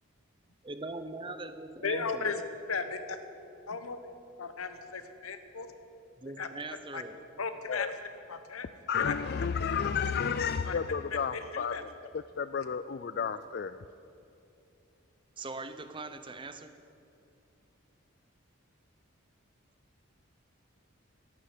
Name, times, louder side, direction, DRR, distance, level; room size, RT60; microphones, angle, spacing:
voice 1, 0.6-2.3 6.2-7.3 15.4-16.7, right 2 dB, 25° right, 10 dB, 0.7 m, -41 dB
voice 2, 1.8-2.4 2.7-3.2 3.7-4.0 4.4-5.7 6.4-6.5 6.9-7.0 7.4-8.7 9.0-9.1 10.6-10.8 11.1-11.8, left 4 dB, 85° left, 9 dB, 1.1 m, -36 dB
voice 3, 8.9-11.8 12.1-13.8, left 6 dB, 50° left, 12 dB, 0.4 m, -32 dB
13.5 x 11.0 x 8.3 m, 2.7 s
head